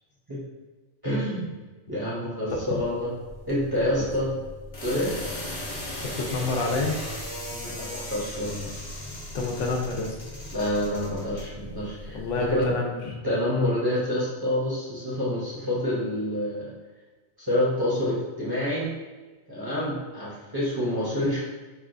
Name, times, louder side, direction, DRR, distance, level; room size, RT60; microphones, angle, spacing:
voice 1, 1.0-1.5 1.9-3.1 3.5-4.3 4.8-5.1 7.5-8.7 10.5-12.7 13.2-16.7 17.4-18.9 19.5-21.4, left 1 dB, 25° right, -8 dB, 0.7 m, -27 dB
sound 1, 2.6-12.7, left 1 dB, 35° left, 0.7 m, -38 dB
voice 2, 6.2-6.9 9.3-10.2 12.1-13.2, left 3 dB, 80° left, 1 dB, 0.9 m, -28 dB
4.2 x 2.2 x 2.5 m, 1.2 s
omnidirectional pair, 1.3 m